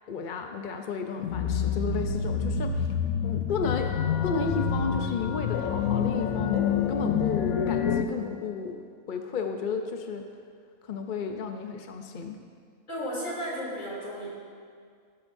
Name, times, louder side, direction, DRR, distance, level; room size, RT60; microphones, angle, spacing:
voice 1, 0.1-3.0 3.2-3.9 4.2-8.8 9.1-10.2 10.9-12.4, left 5 dB, 45° left, 4 dB, 0.7 m, -33 dB
sound 1, 1.2-8.0, left 7 dB, 85° left, 1.1 m, -27 dB
voice 2, 12.9-14.4, equal, 65° left, -5 dB, 3.4 m, -34 dB
18.0 x 11.0 x 2.6 m, 2.1 s
omnidirectional pair, 1.4 m